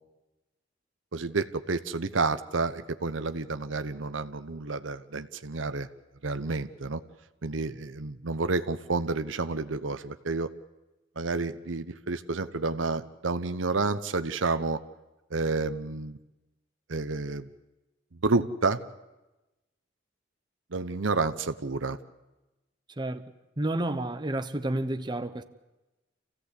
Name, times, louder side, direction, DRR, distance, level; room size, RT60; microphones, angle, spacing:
voice 1, 1.1-5.9 6.2-7.0 7.4-10.5 11.2-14.8 15.3-16.2 16.9-17.5 18.2-18.8 20.7-22.0, right 3 dB, 85° right, 0.9 m, -30 dB
voice 2, 23.6-25.4, right 1 dB, 25° right, 0.9 m, -30 dB
27.5 x 16.0 x 8.3 m
head